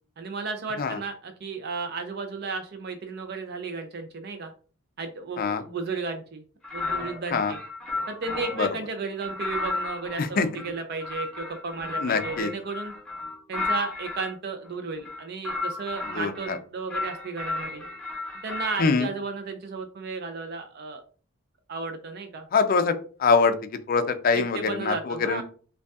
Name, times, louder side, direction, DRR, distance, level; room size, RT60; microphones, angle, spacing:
voice 1, 0.2-4.5 5.0-6.4 6.7-7.6 8.1-12.9 13.5-17.8 18.4-21.0 21.7-22.5 24.3-25.4, right 4 dB, 50° right, 6 dB, 0.4 m, -34 dB
sound 1, 6.6-8.8 9.2-14.3 15.0-16.6 16.9-18.9, left 3 dB, 5° left, 0.8 m, -33 dB
voice 2, 12.0-12.5 16.2-16.6 18.8-19.1 22.5-22.9 23.2-23.5 23.9-25.4, left 4 dB, 45° left, 8 dB, 0.4 m, -23 dB
5.2 x 2.3 x 2.3 m, 0.41 s
head